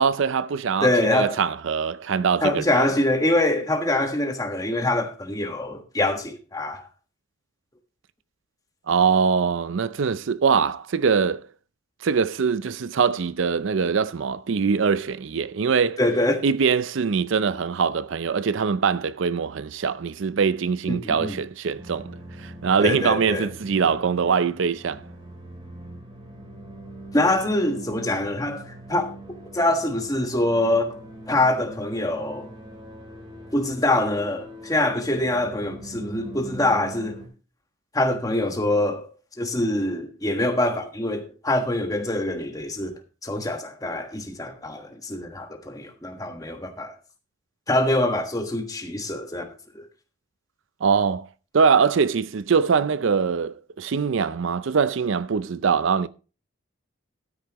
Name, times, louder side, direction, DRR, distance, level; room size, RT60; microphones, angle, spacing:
voice 1, 0.0-2.9 8.9-11.4 12.0-16.0 16.4-25.0 50.8-51.3 51.5-56.1, right 6 dB, 70° right, 0.5 m, -23 dB
voice 2, 0.8-1.4 2.4-6.8 16.0-16.4 20.9-21.4 22.8-23.5 27.1-29.1 29.5-31.0 31.3-32.5 33.5-37.2 37.9-39.1 39.4-42.9 43.2-46.9 47.7-49.5 49.7-49.8, left 1 dB, 15° left, 1.4 m, -24 dB
sound 1, 21.8-37.3, right 1 dB, 25° right, 3.0 m, -42 dB
13.0 x 9.7 x 3.0 m
head